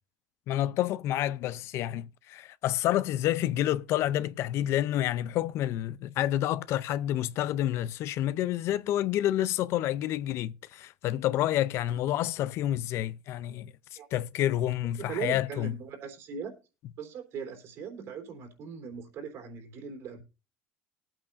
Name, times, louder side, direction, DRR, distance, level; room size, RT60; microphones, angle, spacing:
voice 1, 0.5-13.7 14.1-15.7, left 13 dB, 60° left, 0.5 m, -29 dB
voice 2, 15.0-16.5 17.0-20.2, right 6 dB, 60° right, 3.4 m, -39 dB
19.5 x 8.7 x 2.6 m
supercardioid pair, 110°, 5 cm